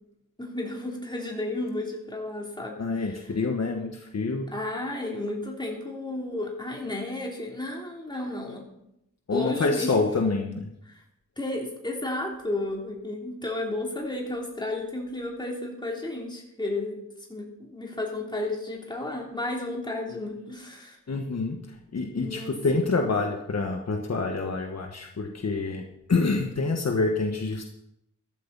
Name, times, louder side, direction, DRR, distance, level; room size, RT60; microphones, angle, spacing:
voice 1, 0.4-3.2 4.5-8.7 9.3-10.0 10.8-11.0 11.4-17.0 17.3-21.0 22.2-22.6, left 2 dB, 15° left, -2 dB, 3.2 m, -33 dB
voice 2, 2.8-4.5 9.3-10.7 21.1-21.6 21.9-25.8 26.1-27.6, left 3 dB, 55° left, 2 dB, 1.4 m, -27 dB
14.5 x 12.0 x 4.1 m, 0.81 s
wide cardioid pair, 130°, 32 cm